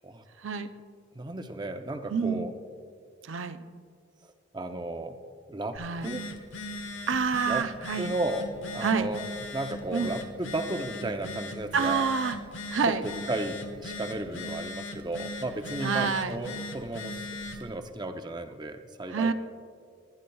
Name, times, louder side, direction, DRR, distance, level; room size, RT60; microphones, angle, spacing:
voice 1, 1.1-2.5 2.9-3.0 4.5-5.2 5.5-6.2 7.5-7.7 8.0-12.0 12.9-17.3 17.6-19.3, right 2 dB, 20° right, 6 dB, 0.6 m, -34 dB
voice 2, 2.1-2.5 3.3-3.6 5.8-6.1 7.1-8.1 8.8-9.1 9.9-10.1 11.7-12.4 12.7-13.0 15.8-16.3 19.1-19.3, right 5 dB, 90° right, 10 dB, 0.6 m, -27 dB
Telephone, 5.7-17.7, left 2 dB, 85° left, 1.1 m, -39 dB
24.5 x 10.0 x 2.3 m, 2.1 s
head